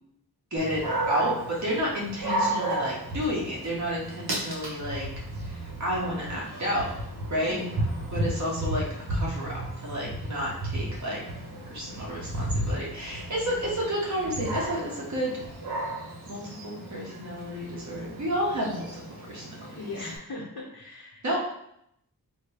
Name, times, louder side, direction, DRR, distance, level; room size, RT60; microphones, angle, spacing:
Dog, 0.6-20.2, right 1 dB, 70° right, 1.1 m, -33 dB
voice 1, 1.1-5.1 5.4-6.9 7.3-7.6 8.1-8.8 9.1-11.2 11.7-15.5 16.3-19.0 19.3-19.4 21.2-21.4, equal, 45° right, -4 dB, 1.1 m, -31 dB
voice 2, 7.5-7.9 15.2-15.3 19.8-21.4, left 3 dB, 70° left, -5 dB, 0.8 m, -39 dB
4.0 x 2.0 x 3.4 m, 0.75 s
wide cardioid pair, 75°, 39 cm